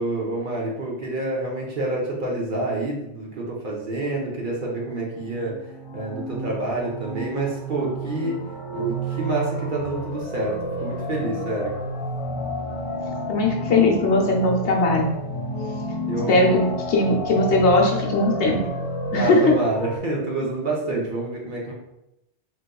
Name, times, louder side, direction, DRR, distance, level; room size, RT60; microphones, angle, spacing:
voice 1, 0.0-5.5 5.9-8.4 8.7-11.7 16.1-16.5 19.1-21.7, right 2 dB, 50° right, -3 dB, 0.8 m, -28 dB
sound 1, 5.3-20.0, equal, 45° left, 0.9 m, -31 dB
sound 2, 9.1-19.5, right 1 dB, 75° right, 1.4 m, -39 dB
voice 2, 13.3-15.1 16.3-18.6 19.1-19.6, left 2 dB, 75° left, -1 dB, 1.0 m, -19 dB
3.7 x 2.9 x 2.2 m, 0.86 s
omnidirectional pair, 1.2 m